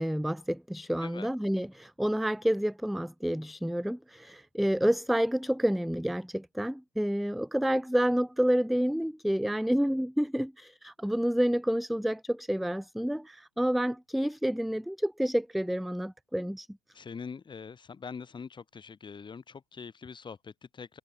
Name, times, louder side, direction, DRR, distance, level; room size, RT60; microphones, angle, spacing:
voice 1, 0.0-16.7, equal, ahead, 0.9 m, -29 dB
voice 2, 16.9-21.0, left 5 dB, 25° left, 6.7 m, -43 dB
supercardioid pair, 105°, 20 cm